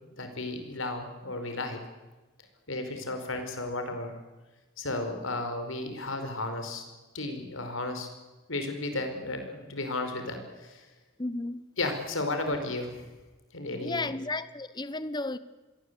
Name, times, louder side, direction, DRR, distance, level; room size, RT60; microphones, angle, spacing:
voice 1, 0.1-1.8 2.7-4.2 4.8-6.8 7.1-8.1 8.5-10.9 11.8-13.0 13.5-14.1, left 2 dB, 75° left, 5.1 m, -33 dB
voice 2, 11.2-11.6 13.8-15.4, left 2 dB, 20° left, 1.0 m, -33 dB
27.5 x 22.0 x 8.3 m
head